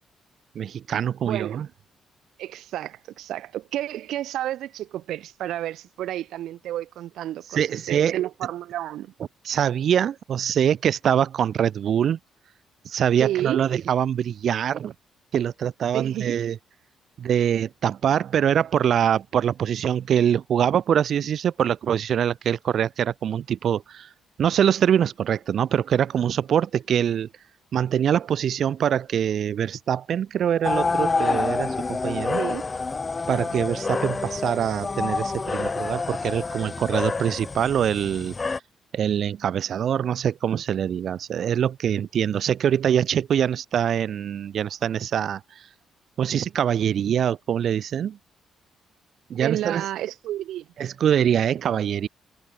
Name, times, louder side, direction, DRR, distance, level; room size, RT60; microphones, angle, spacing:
voice 1, 0.5-1.7 7.5-8.2 9.4-12.2 12.8-14.9 15.3-16.6 17.2-24.1 24.4-27.3 27.7-32.4 33.3-38.5 38.9-45.7 46.2-48.2 49.3-49.9 50.8-52.1, right 9 dB, 60° right, 1.1 m, -24 dB
voice 2, 1.2-1.6 2.4-9.1 13.2-13.6 15.9-16.4 32.3-32.7 49.4-50.7, right 13 dB, 80° right, 0.8 m, -31 dB
sound 1, 30.6-38.6, left 4 dB, 30° left, 1.9 m, -27 dB
cardioid pair, 90°, 0 cm